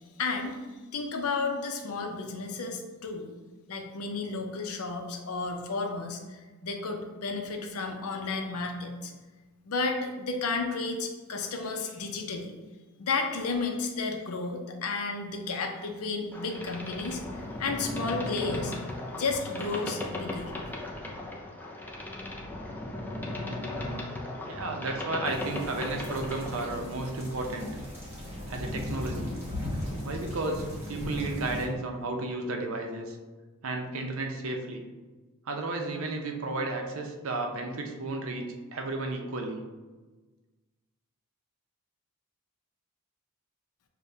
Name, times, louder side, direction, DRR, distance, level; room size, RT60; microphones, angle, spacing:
voice 1, 0.2-0.6 0.9-3.3 3.7-6.2 6.6-9.1 9.7-12.5 13.0-17.2 17.6-18.7 19.1-20.5, left 4 dB, 80° left, 3 dB, 0.6 m, -32 dB
Boat Water vehicle, 16.3-26.8, left 2 dB, 10° left, 0.4 m, -37 dB
voice 2, 24.5-27.7 28.5-29.3 30.0-33.2 33.6-34.8 35.5-38.4 38.7-39.6, right 2 dB, 65° right, 3 dB, 0.6 m, -33 dB
sound 1, 25.3-31.7, left 1 dB, 10° right, 1.2 m, -37 dB
6.5 x 2.2 x 2.7 m, 1.3 s
head